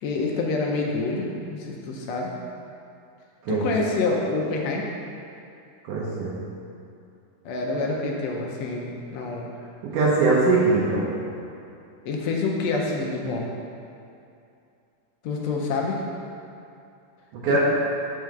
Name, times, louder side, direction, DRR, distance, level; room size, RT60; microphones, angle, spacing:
voice 1, 0.0-2.3 3.5-4.8 7.4-9.5 12.0-13.5 15.2-16.0 17.5-17.6, left 3 dB, 75° left, -1 dB, 1.7 m, -27 dB
voice 2, 5.8-6.3 9.8-11.1 17.3-17.6, right 3 dB, 80° right, -6 dB, 2.4 m, -21 dB
5.6 x 4.7 x 6.4 m, 2.6 s
omnidirectional pair, 3.6 m